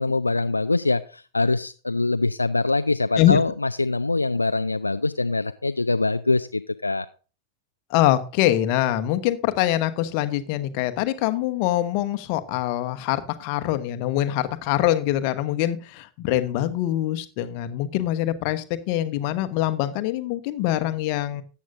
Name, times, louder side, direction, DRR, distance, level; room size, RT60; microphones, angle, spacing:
voice 1, 0.0-7.1, left 3 dB, 80° left, 10 dB, 0.4 m, -23 dB
voice 2, 7.9-21.4, left 13 dB, 45° left, 10 dB, 1.1 m, -24 dB
14.0 x 8.5 x 2.6 m, 0.35 s
figure-of-eight pair, 90°, 0 cm